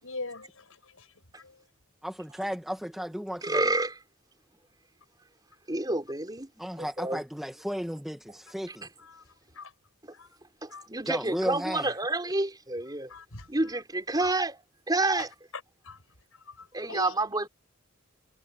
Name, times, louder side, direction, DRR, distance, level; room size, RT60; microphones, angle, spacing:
voice 1, 0.0-1.1 1.4-1.6 9.0-9.2 9.5-9.7 10.1-10.3 10.7-10.9 13.1-13.5 14.2-14.3 15.2-15.3 15.5-16.0 16.3-17.5, left 3 dB, 80° left, 6.0 m, -42 dB
voice 2, 2.0-3.7 6.6-8.9 11.0-11.9, equal, ahead, 1.7 m, -34 dB
voice 3, 3.4-3.9 5.7-6.5 6.8-7.2 10.6-13.1 13.5-14.6 14.9-15.3 16.7-17.5, right 2 dB, 20° right, 4.5 m, -29 dB
head